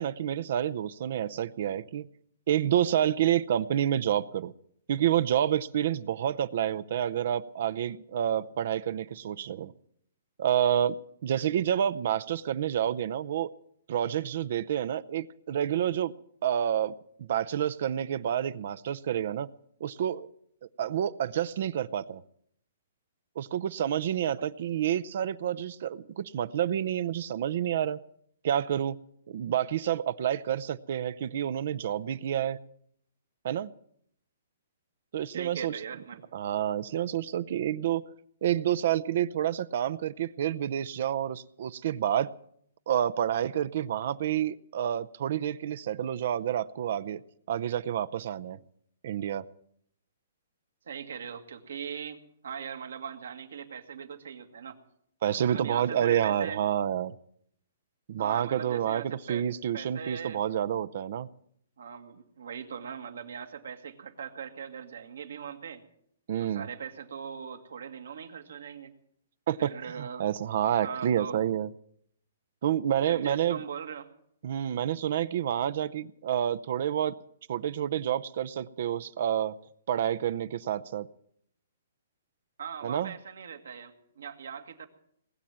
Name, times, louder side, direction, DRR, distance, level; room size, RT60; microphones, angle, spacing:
voice 1, 0.0-2.1 2.5-4.5 4.9-9.7 10.4-10.9 11.2-13.5 13.9-16.1 16.4-19.5 19.8-20.3 20.8-22.2 23.4-28.0 28.4-29.0 29.3-32.6 33.4-33.7 35.1-35.8 36.3-38.0 38.4-42.3 42.9-47.2 47.5-48.6 49.0-49.4 55.2-57.1 58.1-61.3 66.3-66.7 69.5-69.7 70.0-71.7 72.6-73.6 74.4-77.1 77.5-79.6 79.9-81.1 82.8-83.1, right 10 dB, 55° right, 15 dB, 0.6 m, -29 dB
voice 2, 35.3-36.2 50.9-54.8 55.4-56.6 58.2-59.5 59.7-60.4 61.8-65.8 66.5-68.9 69.6-70.2 70.8-71.4 73.1-74.1 82.6-84.9, right 7 dB, 80° right, 6 dB, 1.9 m, -40 dB
20.0 x 7.4 x 9.2 m, 0.69 s
hypercardioid pair, 145°, 0 cm